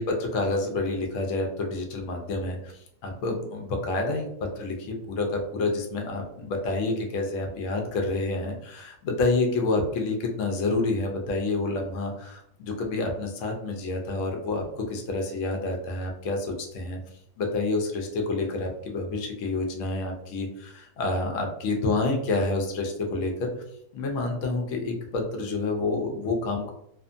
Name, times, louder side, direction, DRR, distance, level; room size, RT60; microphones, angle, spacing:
voice 1, 0.0-2.7 3.0-17.0 17.4-23.5 23.9-26.7, left 3 dB, 65° left, 2 dB, 0.8 m, -28 dB
2.6 x 2.4 x 2.5 m, 0.72 s
omnidirectional pair, 1.7 m